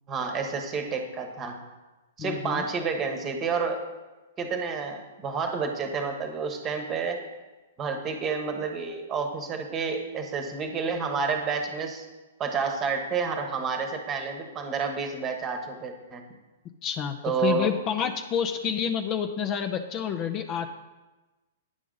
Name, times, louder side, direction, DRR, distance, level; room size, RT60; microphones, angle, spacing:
voice 1, 0.1-1.6 2.2-3.8 4.4-7.2 7.8-12.0 12.4-16.2 17.2-17.7, right 5 dB, 25° right, 5 dB, 1.1 m, -29 dB
voice 2, 2.2-2.6 16.8-20.7, left 8 dB, 35° left, 7 dB, 0.5 m, -29 dB
9.3 x 6.0 x 3.9 m, 1.2 s
hypercardioid pair, 130°, 0 cm